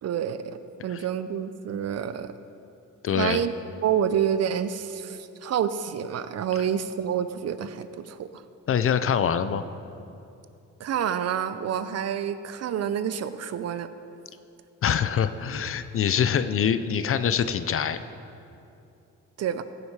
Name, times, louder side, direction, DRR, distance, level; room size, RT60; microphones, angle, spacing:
voice 1, 0.0-2.3 3.1-3.5 3.8-8.3 10.8-13.9 19.4-19.6, right 8 dB, 55° right, 12 dB, 0.6 m, -28 dB
voice 2, 3.0-3.4 8.7-9.6 14.8-18.0, left 8 dB, 45° left, 12 dB, 0.6 m, -24 dB
15.5 x 7.9 x 4.8 m, 2.7 s
cardioid pair, 90°, 30 cm